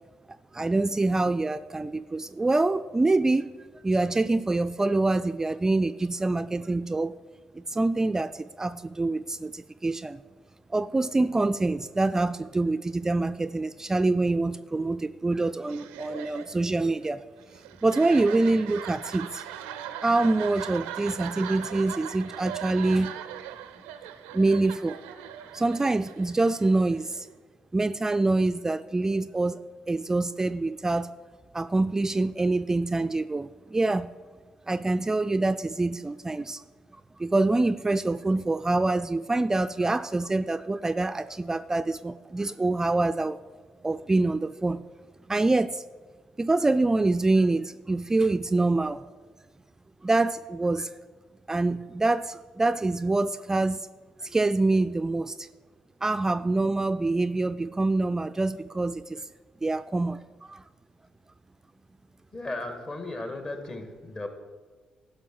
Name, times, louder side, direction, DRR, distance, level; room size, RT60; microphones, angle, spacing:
voice 1, 0.5-3.5 3.8-7.1 7.6-10.2 10.7-17.2 17.8-19.4 20.0-23.1 24.3-25.0 25.5-27.3 27.7-29.6 29.9-31.1 31.5-34.1 34.7-36.6 37.2-43.4 43.8-44.8 45.3-45.8 46.4-49.0 50.0-50.9 51.5-53.8 54.2-55.5 56.0-59.2 59.6-60.2 60.5-60.6, right 2 dB, 20° right, 11 dB, 0.3 m, -25 dB
sound 1, 15.6-27.3, right 10 dB, 90° right, 0.4 m, -40 dB
voice 2, 62.3-64.3, left 2 dB, 40° left, 6 dB, 1.8 m, -35 dB
11.5 x 5.5 x 6.1 m, 1.4 s
hypercardioid pair, 50°, 2 cm